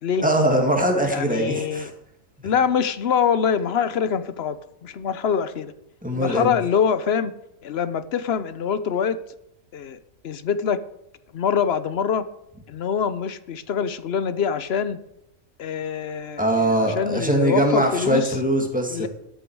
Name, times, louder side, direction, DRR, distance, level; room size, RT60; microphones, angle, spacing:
voice 1, 0.2-1.9 6.0-6.5 16.4-19.1, right 1 dB, 5° right, 1 dB, 2.0 m, -21 dB
voice 2, 1.1-1.9 2.4-5.7 6.1-7.3 7.6-9.2 9.7-10.0 10.2-10.8 11.3-12.3 12.7-15.0 15.6-18.4 18.9-19.1, left 7 dB, 55° left, 14 dB, 0.8 m, -24 dB
13.5 x 10.0 x 4.7 m, 0.82 s
omnidirectional pair, 1.5 m